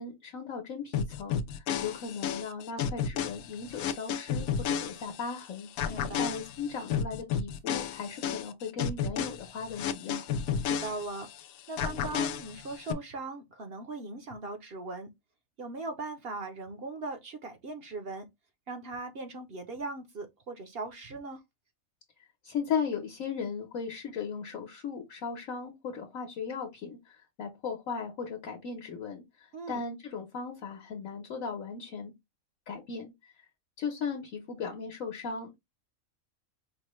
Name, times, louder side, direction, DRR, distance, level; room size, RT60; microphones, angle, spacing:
voice 1, 0.0-10.2 22.4-32.1 32.7-33.1 33.8-35.6, left 5 dB, 70° left, 1.3 m, -37 dB
sound 1, 0.9-5.4 5.8-11.4 11.8-12.9, left 8 dB, 85° left, 1.0 m, -32 dB
voice 2, 5.8-6.4 10.6-11.3 11.7-15.1 15.6-18.3 18.7-21.4 29.5-29.8, right 2 dB, 50° right, 0.8 m, -39 dB
5.2 x 2.1 x 3.0 m
omnidirectional pair, 1.5 m